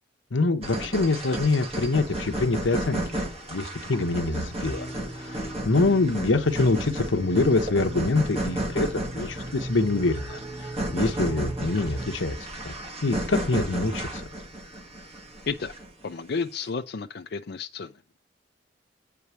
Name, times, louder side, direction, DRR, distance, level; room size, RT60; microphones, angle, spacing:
voice 1, 0.3-3.2 3.5-4.9 5.7-10.4 10.9-12.4 12.6-12.7 13.0-14.2, left 3 dB, 85° left, 0.9 m, -25 dB
sound 1, 0.6-16.0, right 1 dB, 35° right, 1.8 m, -33 dB
sound 2, 4.6-12.2, right 1 dB, 15° right, 0.8 m, -39 dB
voice 2, 16.0-17.9, left 5 dB, 55° left, 0.5 m, -32 dB
8.5 x 4.7 x 6.9 m
head